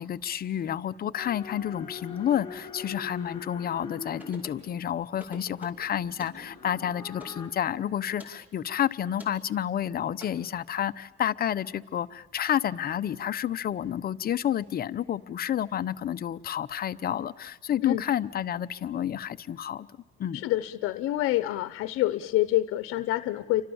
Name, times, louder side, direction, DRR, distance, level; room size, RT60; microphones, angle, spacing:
voice 1, 0.0-19.9 20.2-20.4, left 10 dB, 45° left, 12 dB, 0.9 m, -30 dB
sound 1, 1.2-7.5, left 5 dB, 20° left, 4.2 m, -44 dB
sound 2, 4.2-4.6 5.2-5.8 6.2-6.4 7.2-7.4 8.2-8.4 9.2-9.4 10.2-10.3, left 2 dB, 10° right, 5.2 m, -46 dB
voice 2, 20.3-23.6, left 15 dB, 85° left, 13 dB, 0.9 m, -26 dB
29.5 x 25.0 x 7.2 m, 1.1 s
cardioid pair, 120°, 21 cm